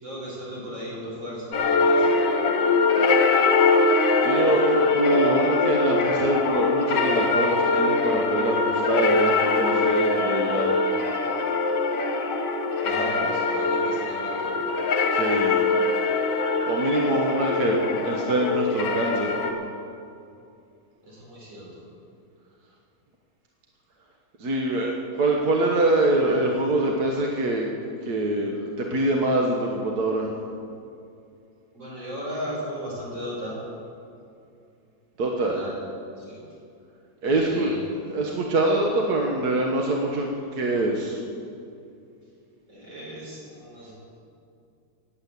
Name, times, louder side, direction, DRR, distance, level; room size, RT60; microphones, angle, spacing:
voice 1, 0.0-2.3 12.8-14.5 21.1-21.7 31.7-33.5 35.4-35.8 36.3-36.4 37.2-37.8 42.7-43.9, equal, 75° right, -5 dB, 5.8 m, -36 dB
sound 1, 1.5-19.5, left 3 dB, 65° left, 2.0 m, -22 dB
voice 2, 4.2-10.7 15.1-15.6 16.7-19.3 24.4-27.7 28.0-30.3 35.2-35.6 37.2-37.8 38.1-41.2, right 2 dB, 55° right, 0 dB, 1.7 m, -24 dB
17.5 x 8.9 x 8.2 m, 2.6 s
omnidirectional pair, 2.1 m